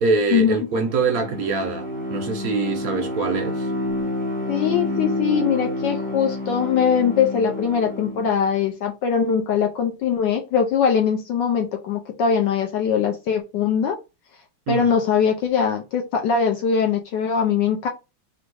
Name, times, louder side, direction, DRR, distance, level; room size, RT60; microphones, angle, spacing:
voice 1, 0.0-3.7 14.7-14.9, right 4 dB, 70° right, 0.8 m, -24 dB
Bowed string instrument, 0.7-8.4, left 1 dB, 5° left, 0.8 m, -29 dB
voice 2, 4.5-14.0 14.7-17.9, left 7 dB, 75° left, 1.2 m, -21 dB
3.6 x 2.5 x 4.5 m
omnidirectional pair, 2.1 m